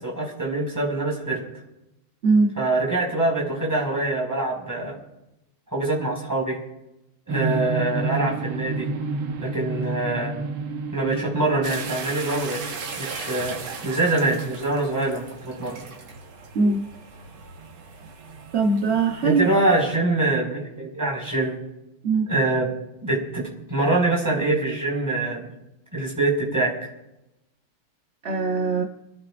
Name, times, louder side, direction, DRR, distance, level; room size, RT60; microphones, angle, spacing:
voice 1, 0.0-1.4 2.6-4.9 5.7-6.6 7.3-8.9 9.4-10.5 10.9-12.6 13.0-15.8 19.2-21.6 22.3-22.7 23.0-25.5 25.9-26.9, right 2 dB, 10° right, -3 dB, 5.3 m, -24 dB
voice 2, 2.2-2.5 16.5-16.9 18.5-19.6 22.0-22.3 28.2-28.8, right 4 dB, 45° right, 2 dB, 0.9 m, -21 dB
sound 1, 7.3-16.2, right 4 dB, 65° right, 1.9 m, -31 dB
sound 2, 11.6-19.9, right 5 dB, 90° right, 2.2 m, -38 dB
28.0 x 14.5 x 2.6 m, 0.91 s
omnidirectional pair, 2.3 m